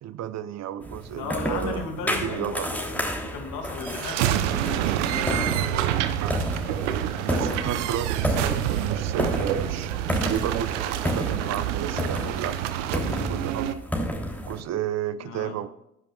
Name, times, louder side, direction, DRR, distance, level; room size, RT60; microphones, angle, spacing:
voice 1, 0.0-2.7 4.1-4.4 6.2-6.4 7.2-13.8 14.4-15.7, right 11 dB, 45° right, 14 dB, 0.8 m, -33 dB
sound 1, 0.8-14.6, equal, 5° left, 3.2 m, -31 dB
voice 2, 1.1-5.7 15.2-15.6, left 5 dB, 60° left, 4 dB, 2.6 m, -36 dB
sound 2, 3.8-13.7, right 11 dB, 75° right, 0.9 m, -27 dB
16.0 x 10.0 x 2.4 m, 0.82 s
figure-of-eight pair, 55°, 36 cm